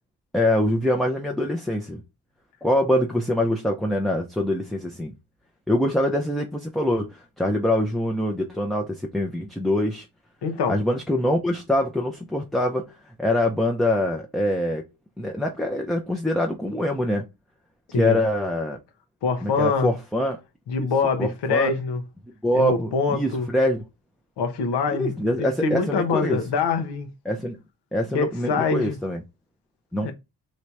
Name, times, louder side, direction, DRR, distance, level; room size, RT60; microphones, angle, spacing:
voice 1, 0.3-2.0 2.6-5.1 5.7-10.1 10.7-12.9 13.2-14.8 15.2-17.3 18.0-18.8 19.4-20.4 21.2-21.7 22.4-23.8 25.0-26.4 27.3-27.6 27.9-29.2 29.9-30.1, left 1 dB, ahead, 0.5 m, -24 dB
voice 2, 10.4-10.8 17.9-18.2 19.2-19.9 20.7-22.0 22.5-23.5 24.4-27.1 28.1-29.0 30.0-30.1, left 4 dB, 90° left, 1.1 m, -24 dB
3.2 x 2.7 x 4.5 m
cardioid pair, 115°, 39 cm